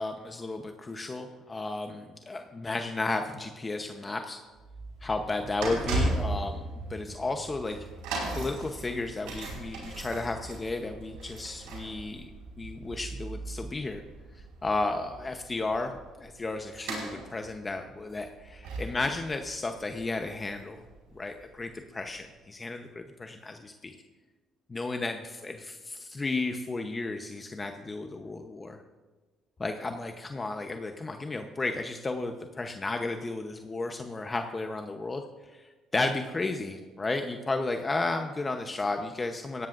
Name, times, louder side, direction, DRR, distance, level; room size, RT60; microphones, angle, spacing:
voice 1, 0.0-4.4 5.0-7.8 8.3-12.3 12.6-14.0 14.6-20.8 21.1-23.9 24.7-28.8 29.6-35.2 35.5-39.7, left 3 dB, 25° left, 5 dB, 0.9 m, -33 dB
sound 1, 4.5-21.5 22.1-22.2, right 2 dB, 90° right, 4.9 m, -37 dB
17.5 x 16.5 x 2.6 m, 1.3 s
supercardioid pair, 85°, 0 cm